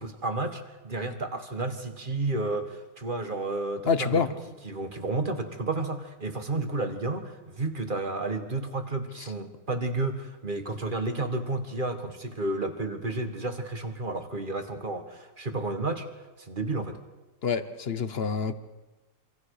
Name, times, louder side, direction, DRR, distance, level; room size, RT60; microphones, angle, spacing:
voice 1, 0.0-4.4 4.6-16.1 16.4-17.0, right 2 dB, 30° right, 6 dB, 1.9 m, -31 dB
voice 2, 3.9-4.3 17.4-18.5, left 5 dB, 40° left, 11 dB, 1.1 m, -26 dB
26.5 x 26.5 x 5.0 m, 1.1 s
omnidirectional pair, 1.9 m